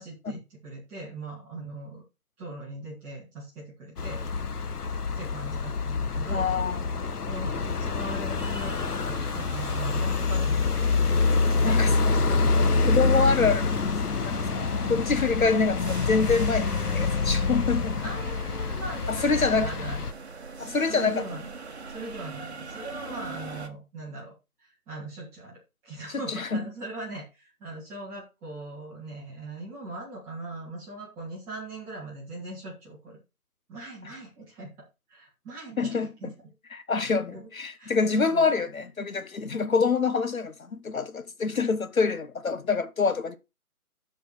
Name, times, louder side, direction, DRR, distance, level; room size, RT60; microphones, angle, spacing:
voice 1, 0.0-2.0 2.4-4.2 5.2-6.5 7.3-8.8 9.0-12.4 12.7-13.2 14.8-15.0 18.0-20.1 20.6-21.4 21.9-24.3 24.6-33.2 33.7-36.3 36.9-37.5 37.8-38.5, right 2 dB, 5° right, 2.0 m, -40 dB
sound 1, 4.0-20.1, left 4 dB, 85° left, 1.2 m, -26 dB
voice 2, 6.3-6.9 11.6-12.1 12.8-13.8 14.2-18.0 19.1-19.7 20.6-21.2 26.3-26.6 35.8-36.3 36.7-43.4, left 4 dB, 65° left, 1.3 m, -26 dB
sound 2, 8.4-23.7, right 4 dB, 45° right, 1.5 m, -42 dB
12.5 x 5.1 x 4.2 m
hypercardioid pair, 175°, 45 cm